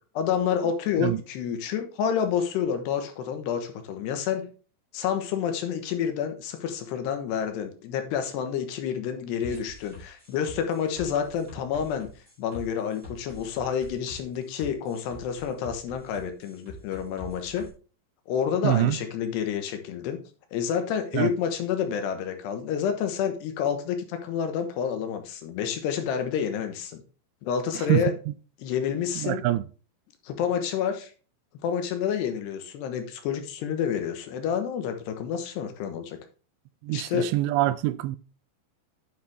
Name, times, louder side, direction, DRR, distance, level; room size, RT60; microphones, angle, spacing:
voice 1, 0.1-4.5 4.9-12.1 12.4-17.7 18.3-20.2 20.5-27.0 27.4-28.1 28.6-29.4 30.2-31.1 31.6-36.2 36.9-37.3, left 8 dB, 75° left, 3.1 m, -29 dB
sound 1, 9.4-17.7, left 1 dB, 15° right, 4.5 m, -45 dB
voice 2, 18.6-19.0 21.1-21.3 27.9-28.3 29.2-29.6 36.8-38.2, right 15 dB, 85° right, 2.7 m, -25 dB
9.7 x 7.1 x 3.3 m
omnidirectional pair, 5.2 m